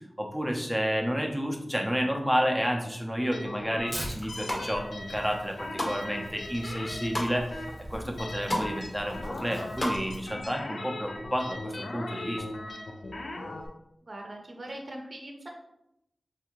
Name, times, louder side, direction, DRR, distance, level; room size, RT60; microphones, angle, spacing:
voice 1, 0.2-7.6 7.9-12.4, equal, ahead, 1 dB, 0.6 m, -30 dB
sound 1, 3.3-13.7, left 2 dB, 90° left, 0.4 m, -40 dB
Tearing, 3.9-10.4, right 1 dB, 20° right, 1.0 m, -43 dB
sound 2, 4.2-4.6 5.2-6.0 6.4-7.3 7.8-7.9 8.1-8.7 9.0-10.0 10.3-10.4, left 1 dB, 30° left, 0.9 m, -32 dB
voice 2, 14.1-15.5, right 1 dB, 50° right, 1 dB, 0.6 m, -41 dB
3.3 x 2.5 x 3.0 m, 0.82 s
wide cardioid pair, 60°, 0 cm